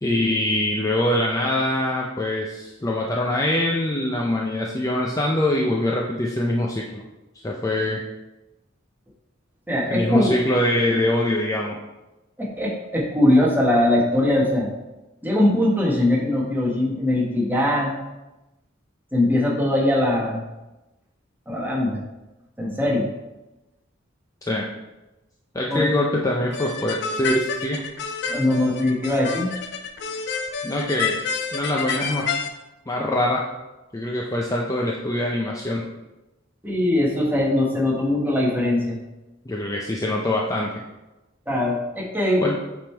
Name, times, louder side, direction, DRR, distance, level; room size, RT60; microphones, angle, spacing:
voice 1, 0.0-7.0 7.4-8.0 9.9-11.8 24.4-24.7 25.5-27.8 30.6-31.2 31.5-32.3 32.9-33.4 33.9-35.8 39.5-40.7 42.4-42.6, left 1 dB, 15° left, -1 dB, 0.5 m, -23 dB
voice 2, 9.7-10.4 12.4-14.7 15.2-18.0 19.1-20.4 21.5-22.0 22.6-23.1 25.7-25.9 28.3-29.5 36.6-39.0 41.5-42.6, left 1 dB, 10° right, -3 dB, 1.4 m, -21 dB
sound 1, 26.5-32.5, left 5 dB, 60° left, 0.6 m, -29 dB
7.8 x 3.7 x 4.4 m, 1.0 s
head